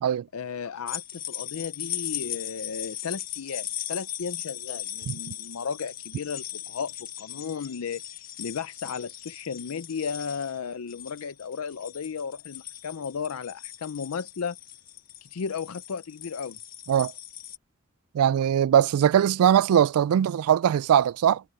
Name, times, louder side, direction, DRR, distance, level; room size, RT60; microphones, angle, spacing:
voice 1, 0.3-14.6 15.3-16.6, left 6 dB, 80° left, 0.5 m, -34 dB
sound 1, 0.9-17.6, left 12 dB, 40° left, 1.2 m, -38 dB
voice 2, 18.1-21.4, right 9 dB, 80° right, 0.3 m, -21 dB
head